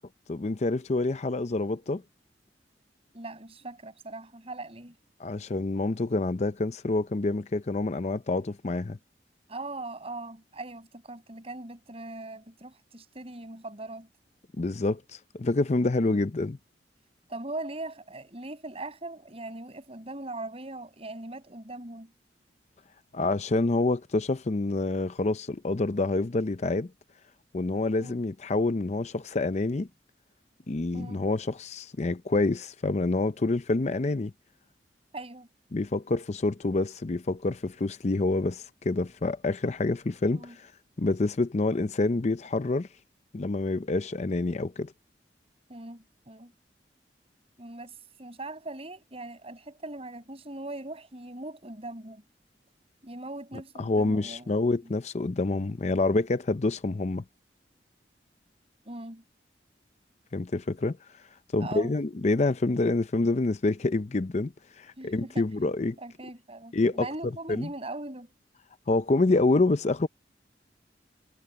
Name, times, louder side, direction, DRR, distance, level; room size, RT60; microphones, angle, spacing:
voice 1, 0.3-2.0 5.2-9.0 14.6-16.6 23.1-26.9 27.5-29.9 30.7-34.3 35.7-40.7 41.0-42.9 43.3-44.9 53.8-57.2 60.3-61.0 61.5-66.0 66.7-67.1 67.5-67.7 68.9-70.1, left 2 dB, 40° left, 0.6 m, -27 dB
voice 2, 3.1-5.0 9.5-14.1 16.0-16.3 17.3-22.1 28.0-28.2 30.9-31.3 35.1-35.5 40.3-40.6 45.7-46.5 47.6-52.2 53.0-54.5 54.8-54.9 58.9-59.2 61.6-62.0 65.0-65.5 66.0-68.3, right 2 dB, 35° right, 7.0 m, -40 dB
head